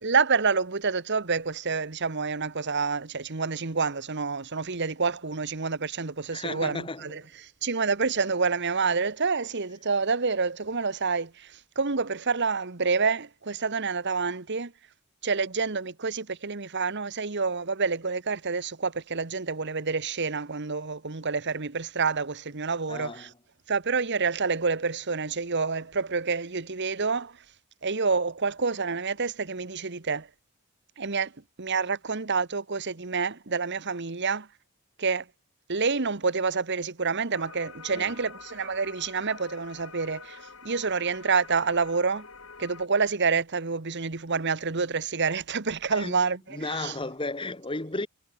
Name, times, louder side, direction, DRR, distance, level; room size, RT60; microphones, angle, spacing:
voice 1, 0.0-14.7 15.2-23.3 23.7-27.4 27.8-30.3 31.0-31.3 31.6-34.5 35.0-35.3 35.7-42.3 42.6-46.9, right 4 dB, 55° right, 1.4 m, -28 dB
voice 2, 6.3-7.2 22.9-23.3 37.8-38.1 45.9-46.2 46.5-48.1, left 2 dB, 25° left, 1.8 m, -34 dB
sound 1, 37.3-42.9, left 5 dB, 65° left, 4.6 m, -46 dB
head